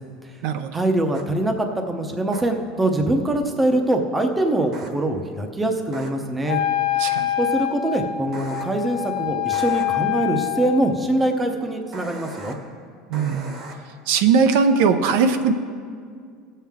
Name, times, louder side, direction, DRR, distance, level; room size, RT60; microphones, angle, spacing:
voice 1, 0.7-6.6 7.4-12.5, right 1 dB, 10° right, 5 dB, 0.7 m, -23 dB
sound 1, 1.1-1.2 2.3-2.4 4.7-4.9 5.9-6.1 8.3-8.6 9.5-9.8 11.9-12.5 13.1-13.7, right 3 dB, 35° right, 1.1 m, -38 dB
Wind instrument woodwind instrument, 6.5-11.0, left 12 dB, 60° left, 0.9 m, -25 dB
voice 2, 13.1-13.6 14.1-15.5, right 5 dB, 65° right, 8 dB, 0.6 m, -19 dB
16.5 x 7.4 x 3.6 m, 2.1 s
cardioid pair, 160°, 0 cm